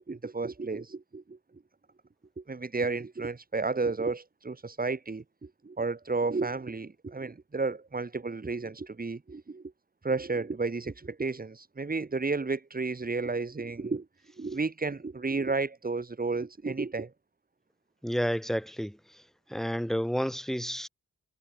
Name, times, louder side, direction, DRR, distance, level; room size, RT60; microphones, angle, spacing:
voice 1, 0.0-1.6 2.4-9.6 10.0-14.1 14.4-17.1, right 3 dB, 30° right, 2.2 m, -32 dB
voice 2, 18.0-19.2 19.5-20.9, equal, ahead, 3.4 m, -31 dB
wide cardioid pair, 125°, 31 cm